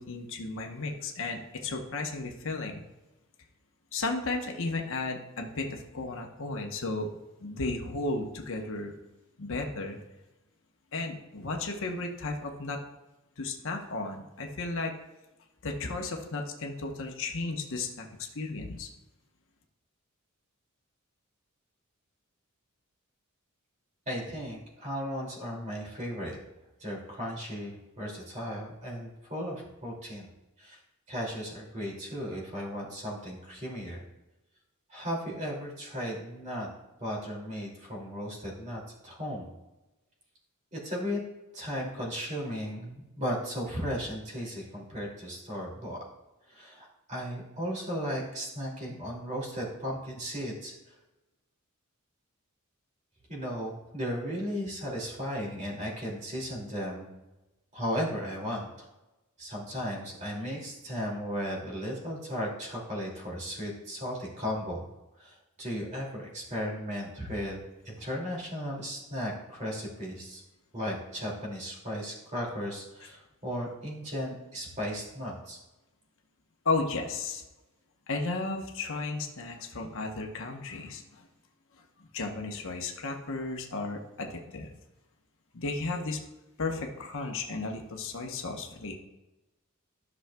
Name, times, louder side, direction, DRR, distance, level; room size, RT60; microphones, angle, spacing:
voice 1, 0.0-2.8 3.9-7.1 7.4-8.9 9.4-10.0 10.9-12.8 13.4-14.9 15.6-18.9 76.6-77.4 78.1-81.3 82.0-84.7 85.5-86.2 86.6-88.9, left 3 dB, 65° left, 2 dB, 1.0 m, -34 dB
voice 2, 24.1-26.4 26.8-30.3 30.6-30.8 31.1-34.0 34.9-36.7 37.0-39.5 40.7-41.2 41.5-46.0 46.5-50.7 53.3-57.1 57.7-58.9 59.4-64.8 65.2-70.4 70.7-75.6, equal, 35° right, -3 dB, 2.6 m, -35 dB
13.5 x 6.2 x 2.3 m, 1.0 s
head